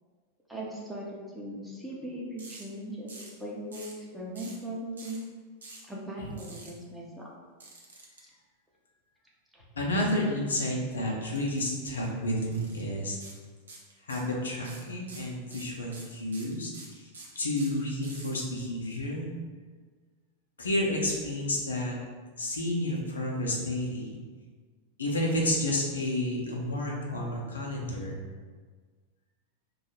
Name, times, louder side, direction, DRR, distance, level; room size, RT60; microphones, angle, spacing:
voice 1, 0.5-3.1 3.4-5.2 5.9-7.3 9.5-9.6, right 1 dB, ahead, -5 dB, 0.7 m, -39 dB
sound 1, 2.4-2.6 3.1-3.4 3.7-4.0 4.4-4.6 5.0-5.2 5.6-5.9 6.4-6.7 7.6-8.2 11.3-11.6 11.9-12.1 12.5-12.8 13.2-13.4 13.7-14.3 14.6-18.3, right 3 dB, 70° right, 0.7 m, -47 dB
voice 2, 9.8-13.2 14.1-17.1 17.4-19.3 20.6-21.9 22.4-24.2 25.0-28.2, left 1 dB, 70° left, -2 dB, 0.6 m, -30 dB
2.8 x 2.3 x 4.1 m, 1.5 s
figure-of-eight pair, 90°, 0 cm